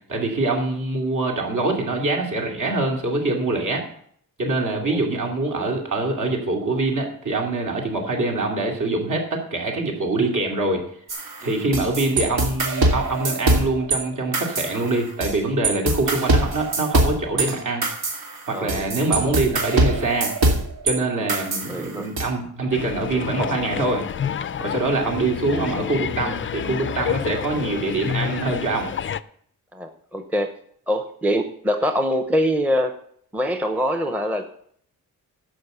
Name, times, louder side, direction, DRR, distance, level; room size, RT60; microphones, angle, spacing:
voice 1, 0.1-3.9 4.4-10.8 11.4-17.9 18.5-20.6 20.8-24.0 24.6-28.9, right 2 dB, 55° right, 1 dB, 2.7 m, -24 dB
sound 1, 11.1-14.0 14.3-15.4 15.6-20.9 21.3-22.2, right 2 dB, 80° right, 2.4 m, -23 dB
voice 2, 18.5-18.9 21.2-21.3 21.7-22.1 29.7-30.5 30.9-32.9 33.3-34.5, equal, 5° right, 6 dB, 0.7 m, -24 dB
sound 2, 22.7-29.2, left 8 dB, 35° left, 0.4 m, -29 dB
12.0 x 5.7 x 6.7 m, 0.65 s
wide cardioid pair, 125°, 37 cm